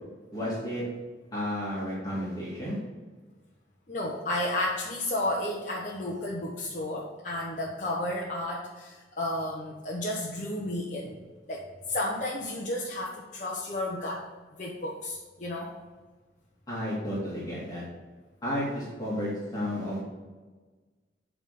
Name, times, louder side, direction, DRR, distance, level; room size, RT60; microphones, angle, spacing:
voice 1, 0.3-0.8 1.3-2.8 16.7-17.8 18.4-20.0, equal, 20° left, -8 dB, 2.4 m, -32 dB
voice 2, 3.9-11.2 11.5-14.2 14.5-15.7, left 1 dB, 45° left, -4 dB, 1.0 m, -32 dB
8.9 x 3.7 x 6.7 m, 1.3 s
head